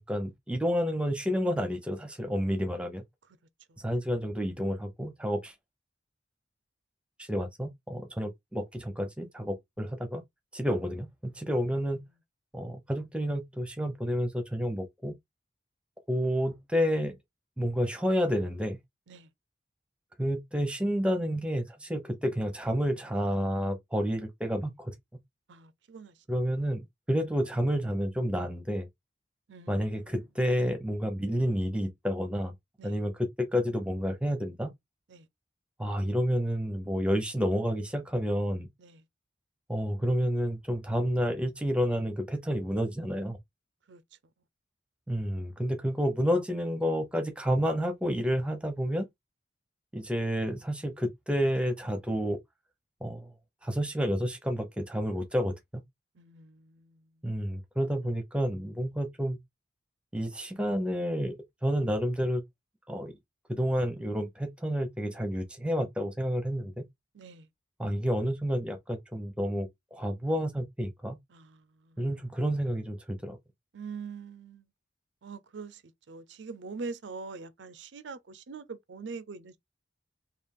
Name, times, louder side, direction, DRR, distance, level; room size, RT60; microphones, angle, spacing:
voice 1, 0.1-3.0 3.8-5.5 7.2-10.2 10.5-12.0 12.5-15.1 16.1-17.1 17.6-18.8 20.2-24.9 26.3-26.8 27.1-28.9 29.7-32.5 32.8-34.7 35.8-38.7 39.7-43.4 45.1-49.0 49.9-52.4 53.0-53.3 53.6-55.8 57.2-59.4 60.1-61.4 61.6-62.4 62.9-63.1 63.5-66.8 67.8-71.2 72.0-73.4, equal, 5° right, 0.8 m, -30 dB
voice 2, 25.5-26.2 29.5-30.1 32.8-33.0 35.1-35.3 38.8-39.0 43.9-44.0 56.1-57.1 67.1-67.5 71.3-72.1 73.7-74.7 75.2-75.8 76.1-79.6, right 4 dB, 80° right, 0.5 m, -43 dB
3.4 x 2.4 x 3.6 m
head